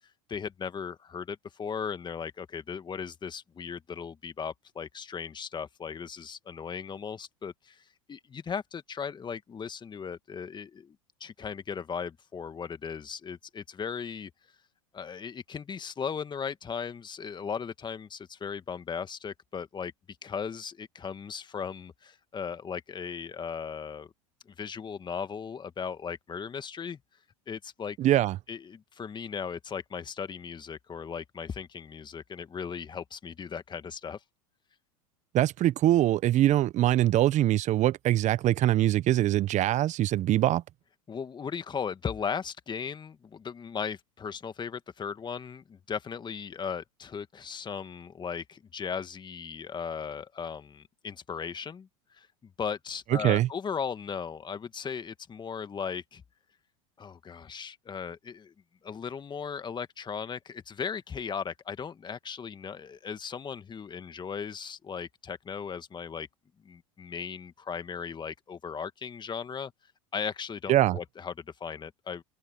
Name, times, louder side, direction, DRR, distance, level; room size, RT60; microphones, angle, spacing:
voice 1, 0.3-11.0 11.2-14.3 14.9-19.9 20.2-24.1 24.6-27.0 27.5-28.0 28.5-34.2 41.1-56.2 57.0-58.5 58.8-66.3 66.6-69.7 70.1-72.2, left 6 dB, 25° left, 1.9 m, -37 dB
voice 2, 28.0-28.4 35.3-40.6 53.2-53.5 70.7-71.0, right 14 dB, 40° right, 1.1 m, -23 dB
open air
hypercardioid pair, 90°, 18 cm